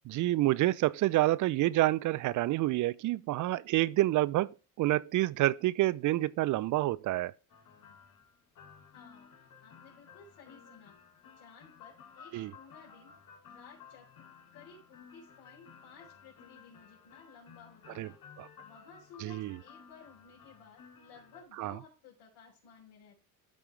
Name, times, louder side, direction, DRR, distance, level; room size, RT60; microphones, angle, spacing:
voice 1, 0.1-4.5 4.8-7.3 12.3-12.5 18.0-18.1 18.4-18.5 19.2-19.6 21.6-21.7, right 16 dB, 45° right, 0.4 m, -28 dB
sound 1, 7.5-21.4, left 7 dB, 50° left, 2.8 m, -55 dB
voice 2, 8.9-10.9 11.4-13.1 13.5-14.2 14.5-18.2 18.6-23.2, left 5 dB, 65° left, 3.9 m, -56 dB
12.5 x 5.1 x 3.2 m
supercardioid pair, 85°, 43 cm